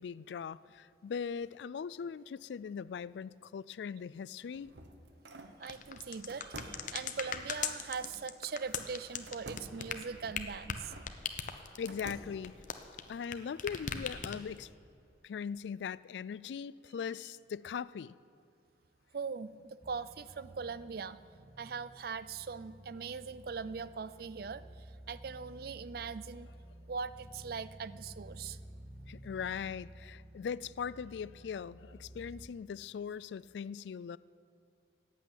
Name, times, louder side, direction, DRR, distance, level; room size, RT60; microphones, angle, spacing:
voice 1, 0.0-4.7 11.8-12.5 13.1-14.7 15.2-18.2 29.1-34.2, left 7 dB, 80° left, 20 dB, 0.3 m, -40 dB
sound 1, 4.2-5.6 6.3-8.2 9.3-11.1 11.6-12.5, right 2 dB, 85° right, 1.3 m, -50 dB
voice 2, 5.4-11.0 19.1-26.5 26.9-28.6, right 5 dB, 60° right, 16 dB, 0.4 m, -41 dB
sound 2, 5.6-13.3 13.6-14.6, left 7 dB, 45° left, 0.8 m, -39 dB
sound 3, 19.8-32.5, right 1 dB, 10° right, 0.6 m, -53 dB
15.0 x 8.4 x 9.4 m, 2.4 s
head